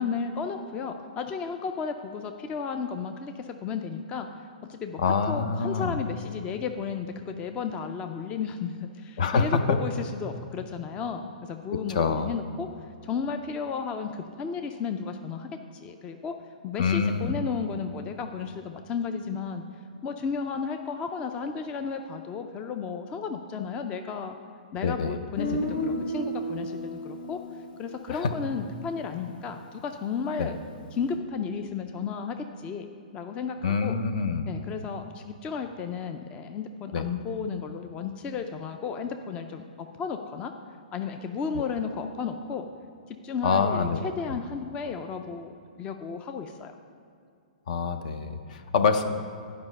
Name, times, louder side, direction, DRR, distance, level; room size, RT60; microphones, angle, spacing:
voice 1, 0.0-4.3 4.7-5.0 5.3-12.7 13.0-16.3 16.6-19.6 20.0-24.4 24.7-27.4 27.8-30.6 30.9-32.9 33.1-33.9 34.5-40.5 40.9-42.6 43.1-45.5 45.8-46.7, left 5 dB, 25° left, 6 dB, 0.4 m, -33 dB
voice 2, 5.0-6.0 9.2-9.8 11.9-12.3 16.8-17.4 24.8-25.2 28.1-28.3 30.4-30.5 33.6-34.5 36.9-37.1 41.5-41.6 43.4-44.4 47.7-49.0, left 5 dB, 60° left, 9 dB, 0.7 m, -26 dB
Guitar, 25.4-29.3, equal, 85° left, 1.1 m, -34 dB
9.6 x 5.1 x 5.3 m, 2.4 s
hypercardioid pair, 135°, 5 cm